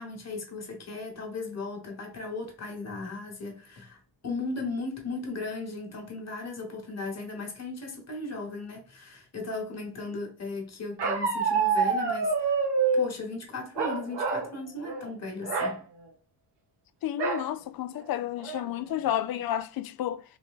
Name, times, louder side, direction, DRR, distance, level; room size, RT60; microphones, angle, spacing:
voice 1, 0.0-12.6 12.9-15.8, left 3 dB, 40° left, 1.4 m, -37 dB
Bark, 11.0-13.1 13.8-14.5 14.8-15.1 15.4-15.8 17.2-17.5 18.0-18.1 18.4-18.9, right 4 dB, 90° right, 1.2 m, -27 dB
voice 2, 17.0-20.2, left 11 dB, 65° left, 0.5 m, -31 dB
3.7 x 2.7 x 3.6 m
cardioid pair, 105°, 40 cm